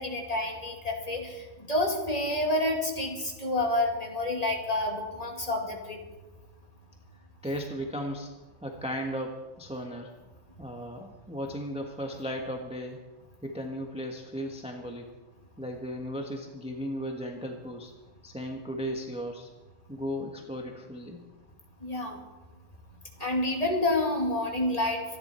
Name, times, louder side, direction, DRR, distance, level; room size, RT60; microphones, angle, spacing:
voice 1, 0.0-6.0 21.8-22.2 23.2-25.2, left 1 dB, 25° left, 1 dB, 2.3 m, -29 dB
voice 2, 7.4-8.3 8.6-10.1 10.6-13.0 13.4-15.1 15.6-17.9 18.2-19.5 19.9-21.3, equal, 5° right, 2 dB, 1.2 m, -36 dB
25.5 x 10.5 x 4.4 m, 1.2 s
omnidirectional pair, 1.5 m